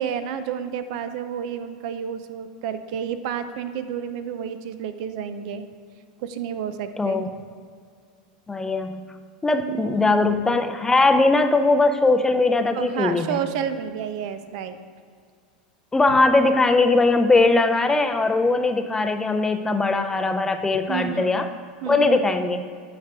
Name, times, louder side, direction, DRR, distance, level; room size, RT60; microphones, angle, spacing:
voice 1, 0.0-5.7 6.2-7.2 9.6-10.2 12.7-14.8 20.9-21.5 21.8-22.2, right 8 dB, 65° right, 10 dB, 0.5 m, -30 dB
voice 2, 7.0-7.3 8.5-9.1 9.4-13.4 15.9-21.5 21.9-22.7, left 3 dB, 10° left, 7 dB, 0.4 m, -20 dB
9.3 x 4.9 x 3.5 m, 2.1 s
hypercardioid pair, 110°, 4 cm